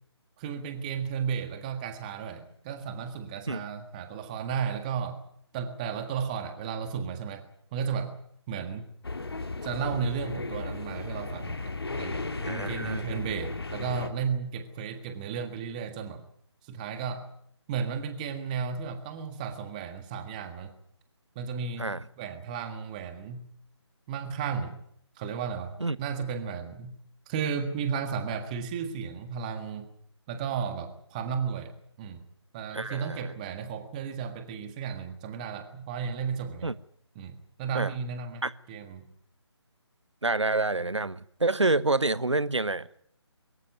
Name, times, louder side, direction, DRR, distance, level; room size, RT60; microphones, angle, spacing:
voice 1, 0.4-5.2 5.5-7.5 7.7-8.1 8.5-8.9 9.6-16.3 16.6-17.3 17.7-20.7 21.3-21.9 22.2-23.5 24.1-24.8 25.2-26.9 27.3-29.9 30.3-31.7 32.0-32.2 32.5-36.7 37.1-38.4 38.7-39.0, right 6 dB, 15° right, 8 dB, 1.7 m, -34 dB
sound 1, 9.0-14.1, left 3 dB, 60° left, 2.1 m, -35 dB
voice 2, 12.4-13.1 21.8-22.0 25.8-26.0 32.7-33.3 36.6-36.7 37.7-37.9 38.4-38.5 40.2-43.0, right 2 dB, 80° right, 18 dB, 1.0 m, -28 dB
23.0 x 14.5 x 9.4 m, 0.67 s
figure-of-eight pair, 150°, 15 cm